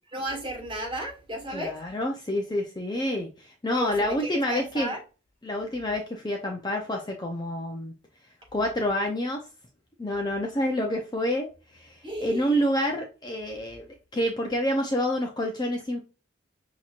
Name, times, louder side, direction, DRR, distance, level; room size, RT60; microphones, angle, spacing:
voice 1, 0.1-1.8 3.7-5.0 12.0-12.7, right 1 dB, 25° right, 1.7 m, -34 dB
voice 2, 1.5-4.9 5.4-7.9 8.5-9.4 10.0-11.5 11.7-16.0, equal, 20° left, 0.5 m, -28 dB
5.8 x 2.9 x 2.4 m
head